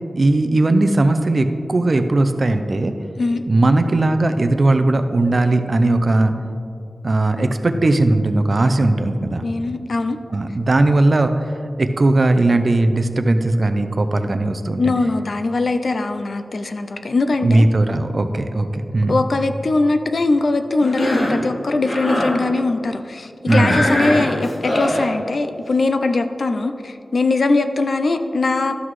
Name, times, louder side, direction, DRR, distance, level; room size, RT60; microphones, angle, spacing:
voice 1, 0.1-2.9 3.5-6.3 7.0-9.4 10.3-14.8 17.4-19.2 23.5-23.8, right 2 dB, 45° right, 8 dB, 0.5 m, -18 dB
voice 2, 9.4-10.2 14.8-17.7 19.1-28.8, left 3 dB, 60° left, 8 dB, 0.4 m, -21 dB
Cough, 20.8-21.4 21.8-22.4 23.5-25.1, left 1 dB, 75° left, 2.0 m, -21 dB
12.0 x 5.9 x 3.1 m, 2.4 s
wide cardioid pair, 110°, 0 cm